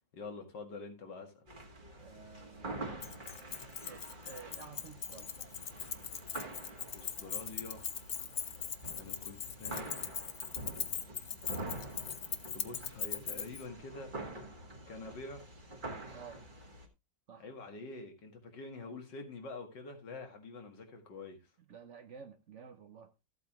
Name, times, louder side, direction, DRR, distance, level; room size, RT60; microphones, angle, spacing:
voice 1, 0.1-1.5 6.9-7.9 8.7-10.3 12.5-14.1 14.9-15.4 17.4-21.4, left 3 dB, 85° left, 2.6 m, -46 dB
sound 1, 1.5-16.9, right 2 dB, 30° right, 1.8 m, -46 dB
voice 2, 2.0-3.1 3.8-5.4 16.1-16.4 17.3-17.5 21.7-23.1, right 6 dB, 55° right, 0.9 m, -52 dB
Keys jangling, 3.0-13.6, left 8 dB, 50° left, 0.8 m, -40 dB
14.0 x 8.2 x 2.9 m
omnidirectional pair, 1.9 m